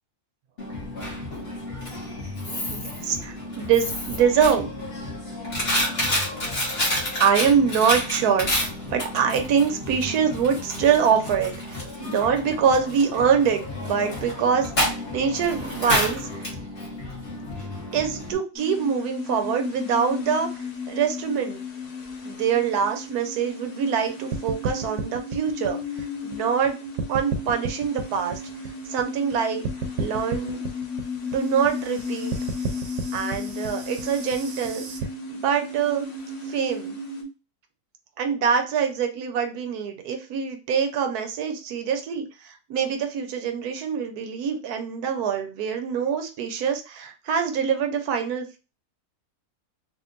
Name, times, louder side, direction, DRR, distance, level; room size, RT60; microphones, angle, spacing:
Coin (dropping), 0.6-18.3, left 1 dB, 45° left, 1.4 m, -30 dB
voice 1, 2.7-4.7 7.2-16.5 17.9-21.6 22.2-26.8 27.1-28.4 28.9-29.6 30.0-30.6 31.2-32.4 33.1-34.8 35.3-36.1 36.5-37.0 38.2-48.5, right 7 dB, 85° right, 5 dB, 1.2 m, -24 dB
sound 1, 18.6-37.2, left 4 dB, 80° left, 1.4 m, -35 dB
sound 2, 24.3-26.7 27.0-29.3 29.6-35.0, right 4 dB, 65° right, 1.0 m, -32 dB
3.6 x 2.5 x 2.5 m, 0.31 s
omnidirectional pair, 1.6 m